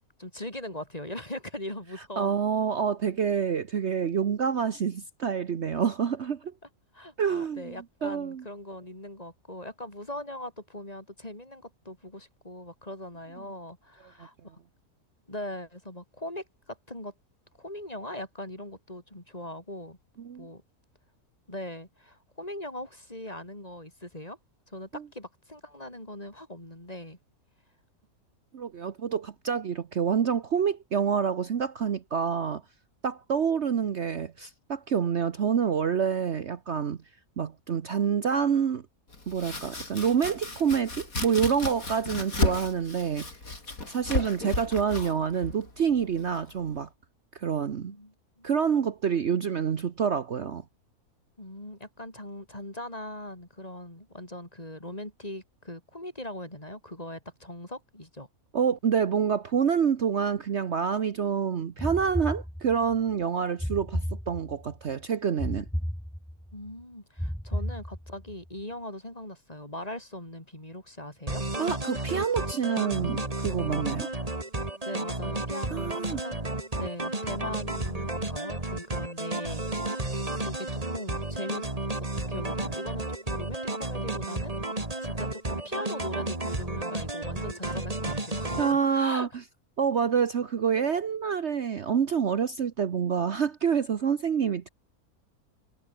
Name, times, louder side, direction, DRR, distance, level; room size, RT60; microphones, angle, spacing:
voice 1, 0.2-2.4 6.9-14.3 15.3-17.1 17.6-20.0 20.4-20.6 21.5-24.4 24.7-27.2 47.8-48.5 51.4-58.3 66.5-71.4 74.8-76.4 76.8-81.7 82.0-84.5 85.0-89.3, left 1 dB, 25° left, 5.3 m, -40 dB
voice 2, 2.2-6.5 7.2-7.7 8.0-8.4 20.2-20.5 24.9-25.0 28.5-32.6 33.0-37.0 37.4-38.8 39.3-43.3 43.9-46.9 47.3-47.9 48.4-50.6 58.5-65.6 71.6-74.1 75.7-76.2 88.6-89.3 89.8-94.7, right 7 dB, 50° right, 1.2 m, -27 dB
Domestic sounds home sounds, 39.1-46.8, left 3 dB, 70° left, 4.9 m, -34 dB
sound 1, 61.8-63.0 63.6-64.8 65.4-66.5 67.2-68.3, equal, ahead, 1.9 m, -33 dB
sound 2, 71.3-88.7, right 2 dB, 25° right, 3.0 m, -32 dB
omnidirectional pair, 1.6 m